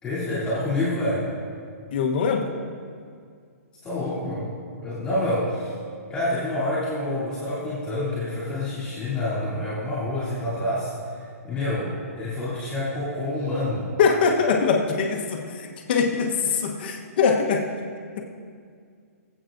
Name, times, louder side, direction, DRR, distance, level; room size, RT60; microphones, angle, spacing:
voice 1, 0.0-1.3 3.8-4.5 4.8-5.7 6.1-13.9, left 1 dB, 10° left, -11 dB, 3.0 m, -27 dB
voice 2, 1.9-2.5 14.0-17.7, left 5 dB, 40° left, 2 dB, 1.0 m, -22 dB
23.0 x 8.1 x 2.6 m, 2.2 s
hypercardioid pair, 170°, 8 cm